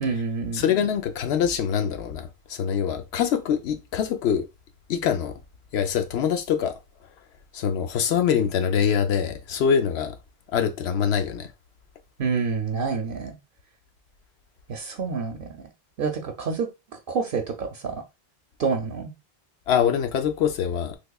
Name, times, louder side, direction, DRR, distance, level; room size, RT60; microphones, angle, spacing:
voice 1, 0.0-0.7 12.2-13.4 14.7-15.5 16.0-16.7 16.9-18.0 18.6-19.1, right 5 dB, 65° right, 0.7 m, -27 dB
voice 2, 0.5-4.4 4.9-5.3 5.7-6.7 7.5-10.2 10.5-11.5 19.7-21.0, left 8 dB, 85° left, 0.9 m, -24 dB
3.5 x 3.1 x 2.2 m
omnidirectional pair, 1.0 m